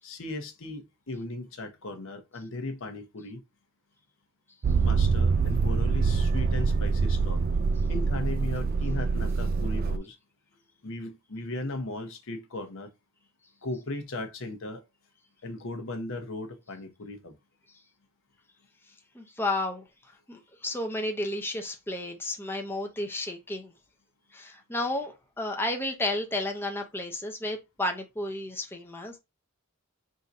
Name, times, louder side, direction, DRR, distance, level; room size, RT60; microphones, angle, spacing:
voice 1, 0.0-3.4 4.8-7.4 7.9-10.2 10.8-12.9 13.6-14.8 15.4-17.3, left 2 dB, 65° left, 0.9 m, -37 dB
Motor vehicle (road), 4.6-10.0, right 4 dB, 45° right, 0.4 m, -25 dB
voice 2, 19.1-19.8 20.3-23.7 24.3-29.2, left 1 dB, 10° left, 0.6 m, -32 dB
3.8 x 2.7 x 4.0 m
head